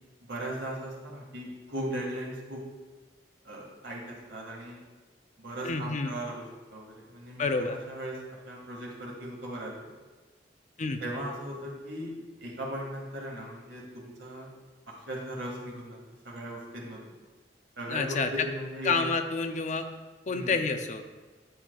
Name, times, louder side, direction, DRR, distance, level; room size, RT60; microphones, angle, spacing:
voice 1, 0.3-2.6 3.4-4.8 5.4-6.5 6.7-8.2 8.4-9.9 11.0-14.5 14.9-16.0 16.2-17.0 17.8-19.1 20.3-20.5, right 1 dB, 80° right, -2 dB, 1.9 m, -38 dB
voice 2, 5.6-6.1 7.4-7.8 10.8-11.0 17.9-18.3 18.8-19.9 20.3-21.0, left 4 dB, 40° left, 7 dB, 0.5 m, -29 dB
9.6 x 7.3 x 2.3 m, 1.3 s
head